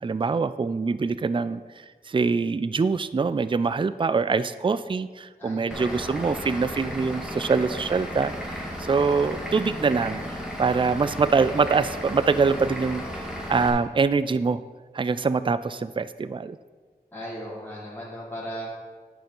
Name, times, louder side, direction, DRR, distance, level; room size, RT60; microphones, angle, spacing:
voice 1, 0.0-1.6 2.1-13.0 13.5-14.6 14.9-16.6, right 4 dB, 30° right, 14 dB, 0.3 m, -24 dB
voice 2, 5.4-6.3 17.1-18.7, equal, 10° left, -7 dB, 2.7 m, -37 dB
Vehicle / Engine, 5.7-13.7, equal, 5° right, 2.0 m, -34 dB
10.5 x 5.3 x 5.4 m, 1.4 s
wide cardioid pair, 55°, 17 cm